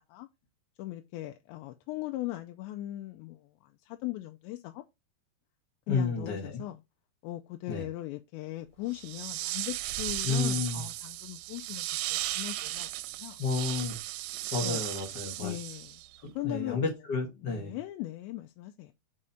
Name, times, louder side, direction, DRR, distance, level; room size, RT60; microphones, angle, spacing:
voice 1, 0.8-4.8 5.9-6.8 7.2-12.9 13.2-13.4 14.6-14.8 15.4-16.0 16.4-16.9 17.4-18.9, left 16 dB, 85° left, 2.9 m, -39 dB
voice 2, 5.9-6.6 7.7-7.8 10.2-10.8 13.4-14.0 14.5-15.6 16.2-17.8, left 4 dB, 70° left, 1.0 m, -31 dB
sound 1, 8.9-16.2, right 16 dB, 85° right, 2.5 m, -36 dB
6.2 x 4.9 x 4.2 m
omnidirectional pair, 5.1 m